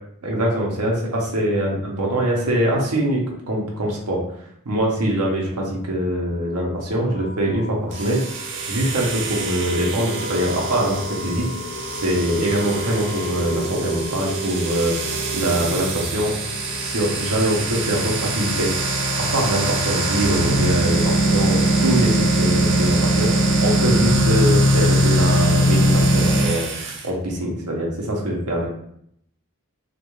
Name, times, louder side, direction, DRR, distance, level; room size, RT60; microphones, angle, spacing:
voice 1, 0.2-4.2 4.7-8.2 8.7-11.5 11.9-16.3 16.8-18.7 19.2-23.3 23.6-28.7, right 1 dB, 85° right, -1 dB, 0.7 m, -23 dB
sound 1, 6.0-20.4, equal, 45° left, 0.5 m, -34 dB
sound 2, 7.9-27.0, right 1 dB, 55° right, 0.4 m, -22 dB
2.3 x 2.3 x 2.9 m, 0.72 s
head